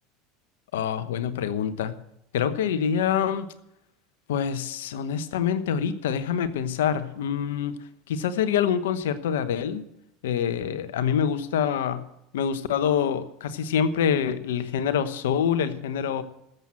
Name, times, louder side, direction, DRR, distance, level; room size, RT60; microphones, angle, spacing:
voice 1, 0.7-1.9 2.3-3.5 4.3-7.8 8.1-9.8 10.2-12.0 12.3-16.2, left 8 dB, 85° left, 12 dB, 1.0 m, -26 dB
13.5 x 7.7 x 7.5 m, 0.83 s
hypercardioid pair, 95°, 0 cm